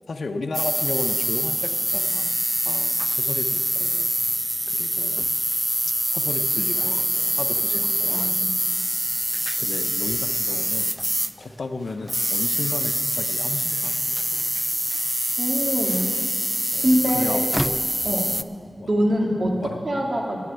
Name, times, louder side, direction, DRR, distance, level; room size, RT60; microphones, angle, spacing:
voice 1, 0.1-2.4 2.6-4.1 4.7-5.2 6.1-7.0 7.4-8.5 9.6-11.0 11.4-14.2 15.9-16.0 16.7-17.8 18.1-18.4 18.8-18.9 19.6-19.9, left 3 dB, 80° left, 6 dB, 0.8 m, -34 dB
sound 1, 0.5-11.6 12.0-18.4, equal, 10° right, 0.3 m, -25 dB
voice 2, 8.1-8.5 15.4-16.1 16.8-17.4 18.0-18.3 18.9-20.4, equal, 55° right, -1 dB, 2.2 m, -23 dB
10.0 x 8.7 x 9.3 m, 2.1 s
wide cardioid pair, 95°, 0 cm